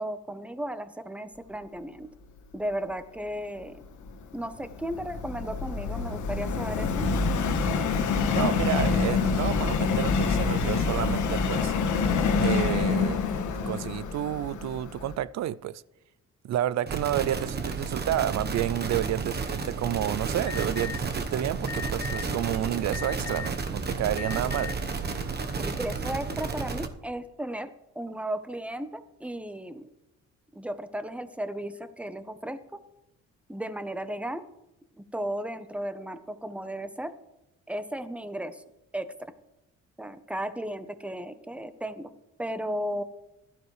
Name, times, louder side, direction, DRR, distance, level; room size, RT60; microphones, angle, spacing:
voice 1, 0.0-2.1 2.5-3.8 4.3-7.1 25.5-29.9 30.5-32.8 33.5-34.4 35.0-37.1 37.7-38.6 38.9-39.1 40.0-42.1 42.4-43.0, right 1 dB, 5° right, 0.9 m, -35 dB
Subway metro underground, 3.8-15.1, left 5 dB, 75° left, 1.5 m, -26 dB
voice 2, 8.3-11.7 12.4-13.2 13.7-15.8 16.4-24.7, right 12 dB, 60° right, 0.5 m, -30 dB
sound 1, 16.9-26.9, right 4 dB, 35° right, 1.1 m, -32 dB
Alarm, 20.5-21.0 21.7-22.2 22.9-23.6 24.1-24.7, left 7 dB, 50° left, 0.7 m, -37 dB
16.0 x 12.5 x 3.3 m
cardioid pair, 90°, 30 cm